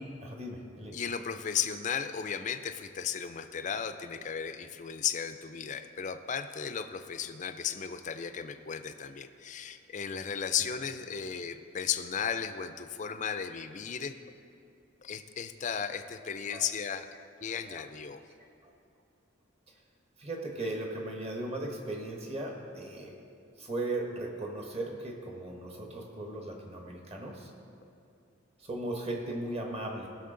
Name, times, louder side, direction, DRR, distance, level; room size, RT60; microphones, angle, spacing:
voice 1, 0.0-1.0 16.5-16.7 17.6-17.8 18.6-18.7 20.2-23.1 23.6-27.5 28.6-30.1, right 1 dB, 30° right, 1 dB, 1.2 m, -37 dB
voice 2, 0.9-14.2 15.0-17.1 17.4-18.2, left 7 dB, 40° left, 10 dB, 0.4 m, -35 dB
16.5 x 6.3 x 3.8 m, 2.5 s
head